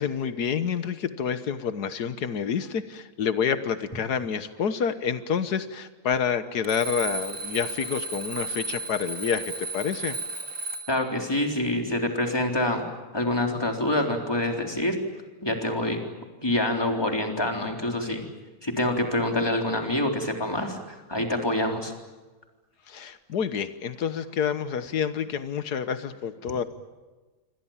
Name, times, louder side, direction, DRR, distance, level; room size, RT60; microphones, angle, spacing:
voice 1, 0.0-10.2 22.9-26.6, left 7 dB, 90° left, 11 dB, 1.7 m, -28 dB
Alarm, 6.6-11.1, right 2 dB, 60° right, 3.2 m, -34 dB
voice 2, 10.9-12.9 13.1-15.0 15.4-16.0 16.4-18.2 18.6-21.9, left 1 dB, 15° left, 2 dB, 3.8 m, -26 dB
28.0 x 25.0 x 7.4 m, 1.2 s
omnidirectional pair, 1.7 m